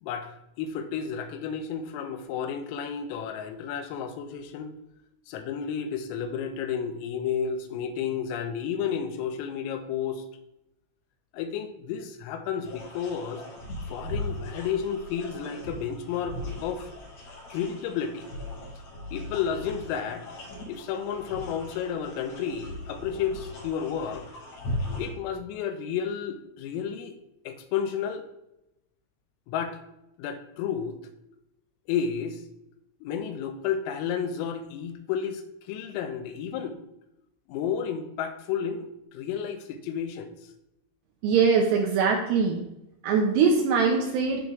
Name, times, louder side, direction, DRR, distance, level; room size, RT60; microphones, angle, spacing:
voice 1, 0.0-4.7 5.3-10.3 11.3-13.4 13.9-16.9 17.5-18.3 19.1-20.3 20.7-24.3 25.0-27.2 27.5-28.3 29.5-29.8 30.2-31.0 31.9-32.4 33.0-36.8 37.5-40.3, left 7 dB, 85° left, 8 dB, 3.5 m, -32 dB
sound 1, 12.6-25.1, left 1 dB, 65° left, 5.8 m, -38 dB
voice 2, 41.2-42.6 43.0-44.4, right 5 dB, 75° right, 1 dB, 2.6 m, -22 dB
14.5 x 5.1 x 3.1 m, 0.86 s
omnidirectional pair, 5.9 m